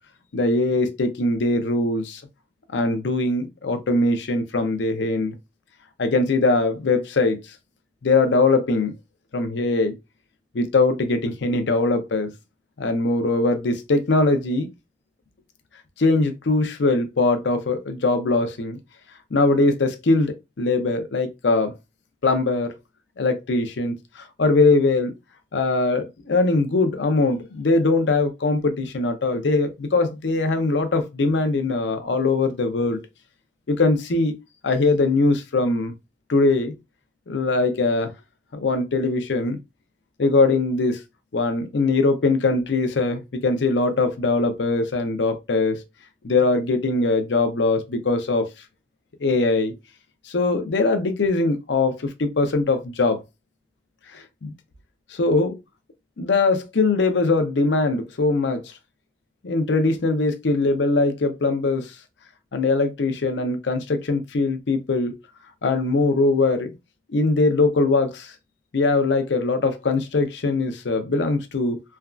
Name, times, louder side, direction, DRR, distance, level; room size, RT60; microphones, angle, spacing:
voice 1, 0.3-2.2 2.7-5.3 6.0-7.4 8.0-8.9 9.3-10.0 10.5-12.3 12.8-14.7 16.0-18.8 19.3-21.8 22.2-22.7 23.2-25.1 25.5-33.0 33.7-34.3 34.6-35.9 36.3-36.7 37.3-38.1 38.5-39.6 40.2-41.0 41.3-45.8 46.2-48.5 49.2-49.7 50.3-53.2 54.1-54.5 55.1-55.6 56.2-58.7 59.4-61.9 62.5-65.2 65.6-66.7 67.1-68.3 68.7-71.8, left 3 dB, 80° left, 0.6 m, -21 dB
3.4 x 2.3 x 2.4 m
head